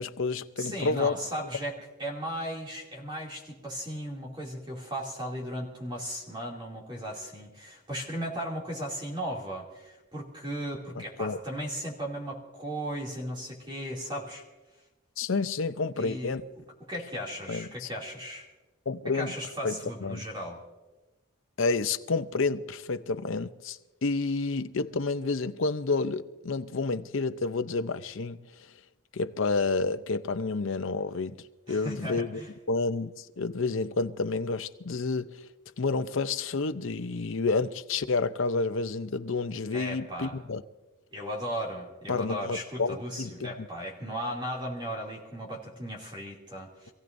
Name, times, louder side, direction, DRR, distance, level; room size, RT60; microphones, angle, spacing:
voice 1, 0.0-1.2 11.0-11.4 15.2-16.4 17.5-17.9 18.9-19.3 19.6-20.2 21.6-28.7 29.1-32.4 32.7-35.5 35.8-40.6 42.1-43.7, left 3 dB, 70° left, 0.7 m, -30 dB
voice 2, 0.6-14.4 16.0-16.4 16.8-18.5 19.0-20.6 31.7-32.5 39.7-40.4 41.1-46.9, equal, 20° right, 2.7 m, -36 dB
26.5 x 16.5 x 2.7 m
head